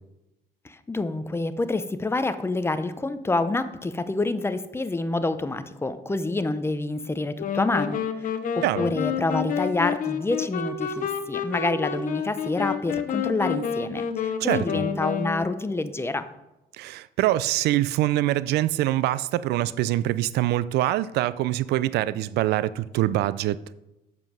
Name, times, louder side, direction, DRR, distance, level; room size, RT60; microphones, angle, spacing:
voice 1, 0.6-16.2, left 2 dB, 15° left, 0.7 m, -27 dB
sound 1, 7.4-15.8, left 7 dB, 55° left, 0.9 m, -29 dB
voice 2, 16.7-23.6, right 14 dB, 75° right, 0.4 m, -24 dB
7.6 x 7.3 x 6.3 m
cardioid pair, 110°, 17 cm